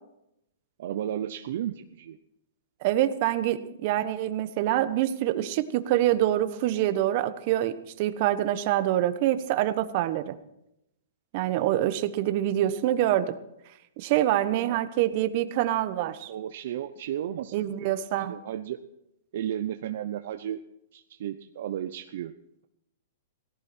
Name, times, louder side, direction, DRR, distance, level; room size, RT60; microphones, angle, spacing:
voice 1, 0.8-2.2 14.6-14.8 16.3-17.7 18.3-18.8 19.3-20.6 20.9-22.3, right 10 dB, 60° right, 8 dB, 0.7 m, -33 dB
voice 2, 2.8-10.3 11.3-13.4 14.0-16.3 17.5-18.3, right 13 dB, 45° right, 12 dB, 1.2 m, -25 dB
17.5 x 15.5 x 4.4 m, 0.83 s
hypercardioid pair, 140°, 0 cm